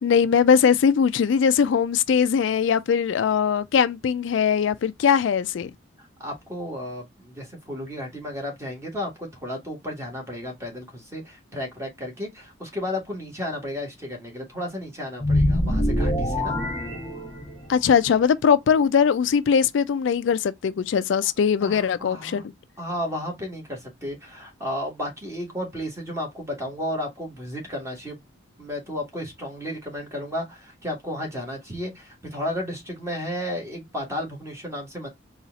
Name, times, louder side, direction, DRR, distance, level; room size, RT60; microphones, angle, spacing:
voice 1, 0.0-5.7 17.7-22.5, left 7 dB, 70° left, 0.3 m, -20 dB
voice 2, 6.0-16.5 21.6-22.5 22.8-28.2 28.6-35.1, left 1 dB, 15° right, 1.5 m, -33 dB
sound 1, 15.2-17.8, left 1 dB, 5° left, 1.6 m, -24 dB
4.1 x 2.4 x 3.9 m
head